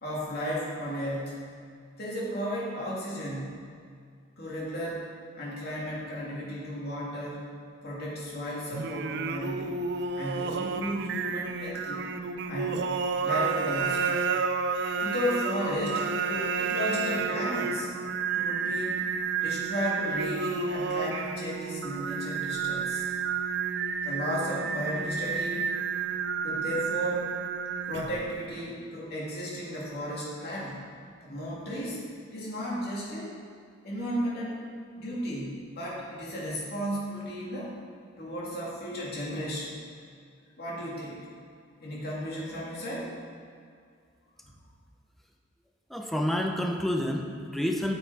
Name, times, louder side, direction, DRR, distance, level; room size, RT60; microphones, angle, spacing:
voice 1, 0.0-1.5 2.0-3.7 4.4-5.1 5.4-7.4 7.8-9.7 10.1-12.1 12.4-12.8 13.2-14.1 15.0-17.9 18.3-19.0 19.4-23.0 24.0-25.6 26.4-27.3 27.8-30.8 31.2-32.0 32.3-33.3 33.8-34.6 34.9-37.7 38.2-39.8 40.6-41.2 41.8-43.1 44.4-44.5, equal, 55° left, -6 dB, 2.6 m, -34 dB
Singing, 8.7-28.3, right 5 dB, 60° right, 0.5 m, -31 dB
voice 2, 45.9-47.9, left 1 dB, ahead, 2 dB, 0.7 m, -29 dB
8.8 x 7.9 x 4.8 m, 2.2 s
head